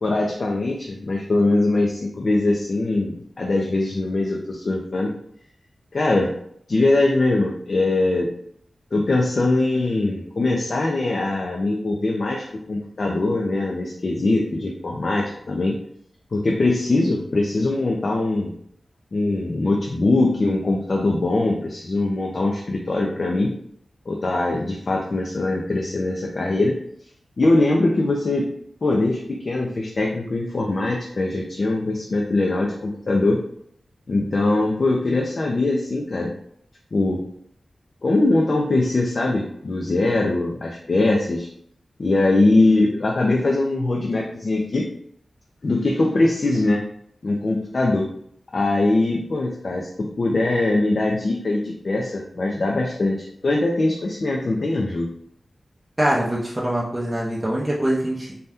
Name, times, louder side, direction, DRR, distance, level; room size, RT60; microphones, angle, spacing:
voice 1, 0.0-5.1 5.9-6.3 6.7-8.3 8.9-15.8 16.3-18.5 19.1-23.5 24.1-26.8 27.4-28.5 28.8-33.4 34.1-36.3 36.9-37.2 38.0-41.5 42.0-44.9 45.6-46.8 47.2-48.1 48.5-55.1, left 2 dB, 50° left, -1 dB, 0.4 m, -22 dB
voice 2, 56.0-58.3, right 1 dB, 15° right, -5 dB, 0.6 m, -23 dB
2.7 x 2.2 x 3.4 m, 0.67 s
wide cardioid pair, 120°, 0 cm